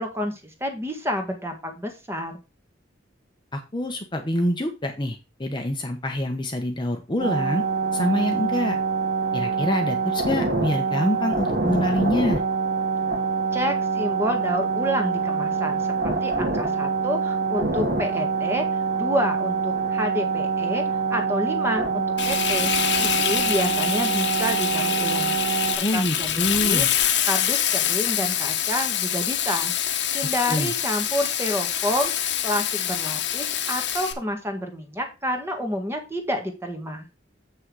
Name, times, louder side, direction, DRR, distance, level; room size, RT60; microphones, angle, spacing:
voice 1, 0.0-2.3 13.5-18.7 18.9-20.8 21.1-22.7 23.0-25.4 25.9-26.9 27.2-29.7 30.1-37.1, equal, 15° right, 4 dB, 1.8 m, -29 dB
voice 2, 3.5-7.6 7.9-8.8 9.3-12.4 25.8-26.9 30.5-30.7, left 1 dB, 25° left, 4 dB, 1.0 m, -26 dB
sound 1, 7.2-25.8, right 5 dB, 55° right, 2.1 m, -25 dB
Frying (food), 22.2-34.1, left 10 dB, 65° left, 1.2 m, -25 dB
7.8 x 6.3 x 4.8 m, 0.28 s
head